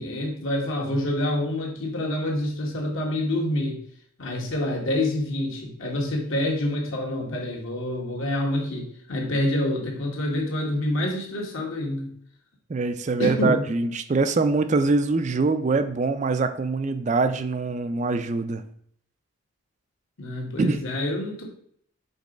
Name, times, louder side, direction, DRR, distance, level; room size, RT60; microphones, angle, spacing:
voice 1, 0.0-3.8 4.2-12.1 13.2-13.6 20.2-21.4, left 1 dB, 65° left, -1 dB, 1.6 m, -27 dB
voice 2, 12.7-18.6 20.6-20.8, right 3 dB, 35° right, 9 dB, 0.4 m, -24 dB
5.2 x 4.0 x 5.1 m, 0.65 s
head